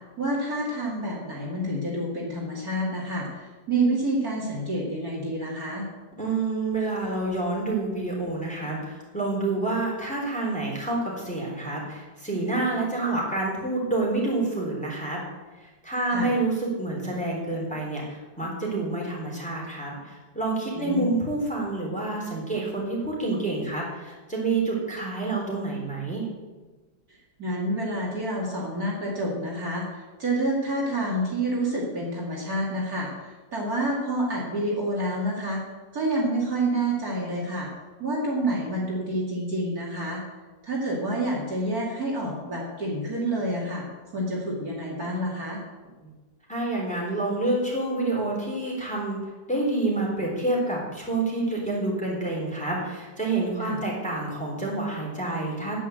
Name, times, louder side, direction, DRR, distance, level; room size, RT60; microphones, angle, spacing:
voice 1, 0.2-5.9 16.1-16.3 20.8-21.1 27.4-29.8 30.2-35.6 35.9-37.7 38.0-40.2 40.6-43.9 44.1-45.6 53.6-53.8, right 1 dB, 45° right, -4 dB, 2.8 m, -28 dB
voice 2, 6.2-15.2 15.8-26.2 46.0-46.1 46.5-49.2 49.5-55.8, right 2 dB, 5° left, -4 dB, 3.8 m, -28 dB
10.0 x 9.5 x 7.9 m, 1.2 s
omnidirectional pair, 2.1 m